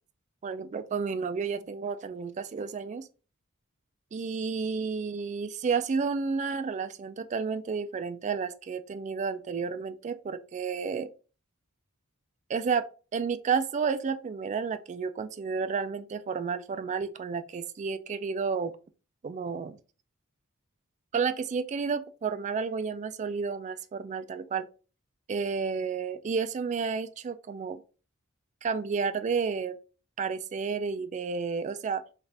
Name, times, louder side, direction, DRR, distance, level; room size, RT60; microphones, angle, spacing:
voice 1, 0.4-3.1 4.1-11.1 12.5-12.9 13.1-18.7 19.2-19.8 21.1-24.7 25.3-27.8 28.6-29.8 30.2-32.0, right 5 dB, 35° right, 0.3 m, -31 dB
3.3 x 2.4 x 3.9 m
head